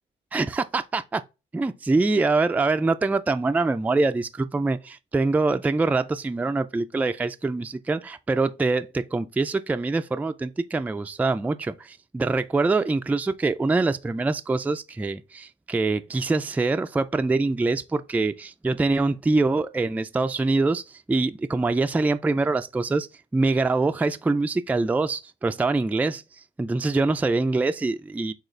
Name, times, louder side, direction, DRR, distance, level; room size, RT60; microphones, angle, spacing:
voice 1, 0.3-1.2 1.5-23.1 23.3-26.2 26.6-28.3, right 3 dB, 10° right, 0.3 m, -24 dB
6.3 x 2.4 x 3.2 m
cardioid pair, 105°, 21 cm